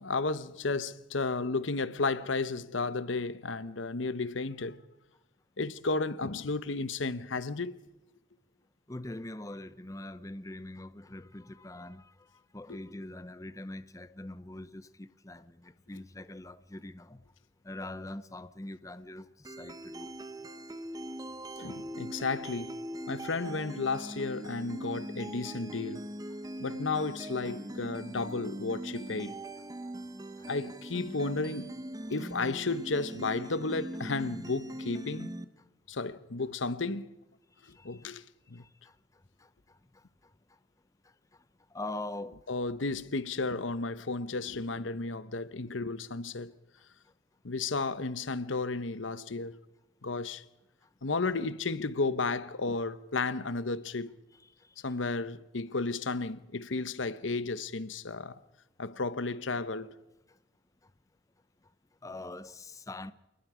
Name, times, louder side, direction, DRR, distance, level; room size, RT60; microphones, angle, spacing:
voice 1, 0.0-4.8 5.6-7.7 12.7-12.8 21.6-22.8 23.1-26.1 26.6-29.4 30.5-31.7 32.1-35.3 35.9-37.1 37.8-38.2 38.5-38.6 42.5-46.5 47.4-49.6 50.0-50.4 51.0-54.1 54.8-58.4 58.8-59.9, left 3 dB, 85° left, 1.0 m, -33 dB
voice 2, 8.9-12.1 12.5-17.2 17.6-20.1 37.8-37.9 38.6-38.7 41.7-42.4 62.0-63.1, left 1 dB, 15° left, 0.7 m, -43 dB
sound 1, 19.5-35.5, right 1 dB, 20° right, 1.0 m, -41 dB
28.0 x 20.5 x 5.0 m
head